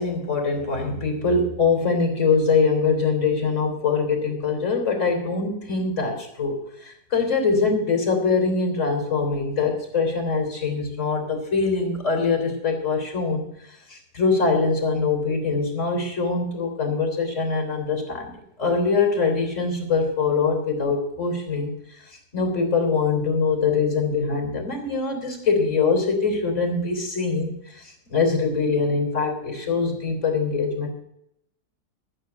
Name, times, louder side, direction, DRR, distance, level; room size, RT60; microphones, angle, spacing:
voice 1, 0.0-13.5 13.9-21.7 22.1-30.9, left 4 dB, 50° left, 4 dB, 3.8 m, -23 dB
13.5 x 7.0 x 8.0 m, 0.75 s
omnidirectional pair, 1.6 m